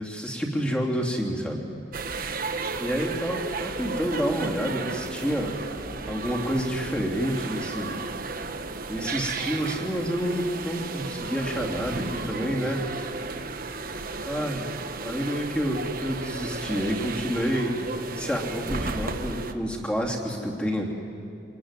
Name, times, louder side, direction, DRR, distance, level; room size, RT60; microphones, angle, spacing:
voice 1, 0.0-1.6 2.8-5.6 6.1-8.0 8.9-13.0 14.3-14.7 15.0-20.9, equal, 5° left, -1 dB, 2.9 m, -29 dB
sound 1, 1.9-19.5, right 3 dB, 50° right, 1.2 m, -34 dB
26.0 x 21.0 x 9.8 m, 2.7 s
head